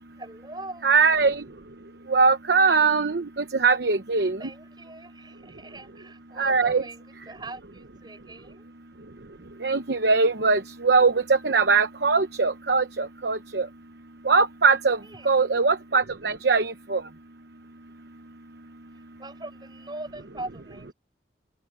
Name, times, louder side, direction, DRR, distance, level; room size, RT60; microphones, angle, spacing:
voice 1, 0.2-1.0 4.4-8.7 15.0-15.5 19.2-20.9, right 2 dB, 25° right, 6.5 m, -42 dB
voice 2, 0.8-1.4 2.1-4.4 6.4-6.8 9.6-13.7 14.2-15.0 15.2-17.0, right 4 dB, 70° right, 0.9 m, -21 dB
head